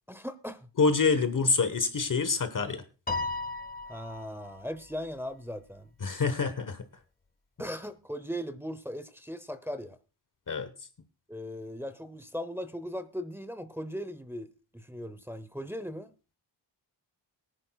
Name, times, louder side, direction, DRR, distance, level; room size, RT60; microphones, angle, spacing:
voice 1, 0.1-0.7 3.9-5.9 7.6-10.0 11.3-16.1, equal, 5° right, 0.7 m, -38 dB
voice 2, 0.8-2.8 6.0-6.8 10.5-10.7, left 4 dB, 45° left, 1.2 m, -26 dB
Piano, 3.1-4.6, left 3 dB, 20° left, 1.4 m, -35 dB
22.0 x 10.0 x 2.3 m
wide cardioid pair, 155°, 45 cm